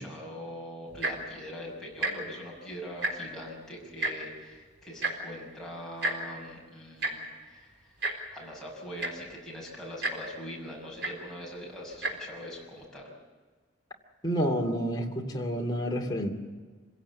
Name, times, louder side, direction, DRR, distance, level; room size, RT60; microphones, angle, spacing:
voice 1, 0.0-8.0 8.3-13.1, equal, 5° left, -4 dB, 6.3 m, -42 dB
Tick-tock, 0.9-1.3 1.9-2.1 2.4-2.6 2.9-3.4 4.0-4.1 5.0-5.1 6.0-6.1 7.0-7.1 8.0-8.1 8.7-8.8 9.0-9.3 10.0-10.1 11.0-11.1 11.9-12.1 12.8-12.9, right 2 dB, 65° right, 4.0 m, -30 dB
voice 2, 14.2-16.3, equal, 20° left, 0 dB, 2.6 m, -29 dB
26.0 x 17.0 x 8.4 m, 1.4 s
head